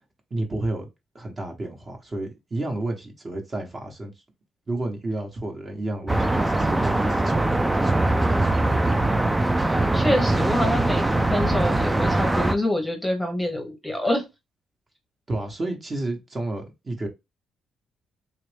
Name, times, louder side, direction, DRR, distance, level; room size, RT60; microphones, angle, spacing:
voice 1, 0.3-0.9 1.1-4.1 4.7-8.6 15.3-17.1, right 2 dB, 30° right, 1.1 m, -31 dB
sound 1, 6.1-12.6, right 2 dB, 15° right, 0.4 m, -22 dB
voice 2, 9.6-14.3, left 1 dB, 5° left, 0.9 m, -26 dB
3.0 x 2.5 x 3.3 m
cardioid pair, 90°, 0 cm